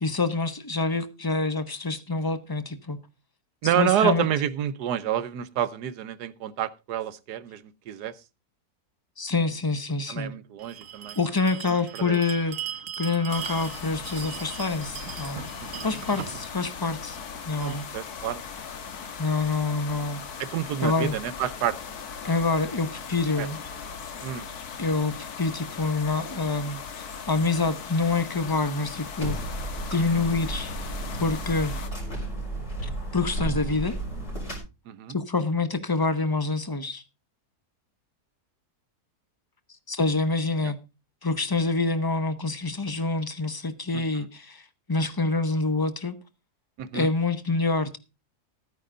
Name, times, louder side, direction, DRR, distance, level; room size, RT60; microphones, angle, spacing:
voice 1, 0.0-3.0 3.8-4.3 9.2-10.3 11.2-15.4 15.8-17.2 17.4-17.8 19.2-20.2 20.8-21.1 22.2-23.6 24.8-29.4 29.9-30.9 31.2-31.7 32.8-33.9 35.1-37.0 39.9-40.8 41.2-44.6 44.9-46.1 46.9-48.0, left 3 dB, 20° left, 0.6 m, -26 dB
voice 2, 3.6-8.1 10.1-11.2 11.7-12.2 15.6-15.9 17.6-18.4 20.4-22.0 23.4-23.5 24.2-24.5 30.1-30.2 34.9-35.1 40.6-40.7 43.9-44.3 46.8-47.1, right 10 dB, 85° right, 1.4 m, -29 dB
Bell, 10.6-17.8, right 9 dB, 55° right, 1.2 m, -39 dB
sound 1, 13.3-31.9, left 6 dB, 70° left, 1.7 m, -39 dB
sound 2, 29.2-34.6, right 1 dB, 50° left, 5.0 m, -33 dB
14.0 x 9.5 x 3.8 m
omnidirectional pair, 1.7 m